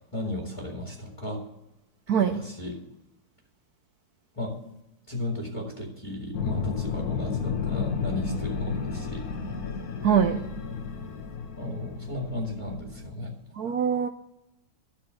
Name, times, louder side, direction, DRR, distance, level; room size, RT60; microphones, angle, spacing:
voice 1, 0.1-1.5 2.2-2.8 4.3-4.6 5.1-9.3 11.6-13.3, left 1 dB, 15° left, 2.1 m, -35 dB
voice 2, 2.1-2.4 10.0-10.4 13.6-14.1, right 7 dB, 80° right, 0.8 m, -23 dB
sound 1, 6.3-13.1, left 5 dB, 50° left, 1.5 m, -32 dB
13.5 x 6.5 x 7.8 m
omnidirectional pair, 2.4 m